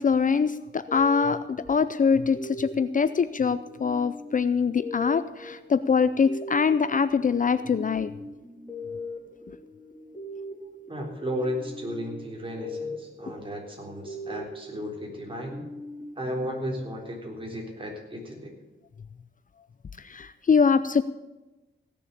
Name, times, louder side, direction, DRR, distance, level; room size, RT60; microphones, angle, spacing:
voice 1, 0.0-8.1 20.0-21.0, left 5 dB, 40° left, 13 dB, 0.5 m, -23 dB
sound 1, 0.9-17.2, left 1 dB, 5° left, 4.3 m, -41 dB
voice 2, 10.9-15.6 16.2-18.5, equal, 25° right, 0 dB, 4.0 m, -34 dB
16.5 x 6.9 x 8.5 m, 1.1 s
wide cardioid pair, 100°, 20 cm